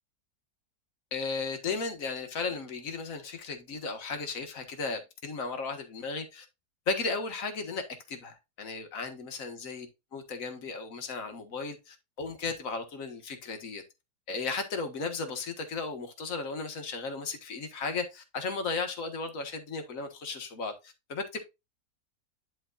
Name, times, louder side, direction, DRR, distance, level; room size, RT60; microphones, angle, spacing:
voice 1, 1.1-6.5 6.9-7.8 8.1-13.8 14.3-21.4, left 4 dB, 55° left, 1.9 m, -35 dB
11.0 x 5.3 x 2.4 m
omnidirectional pair, 1.7 m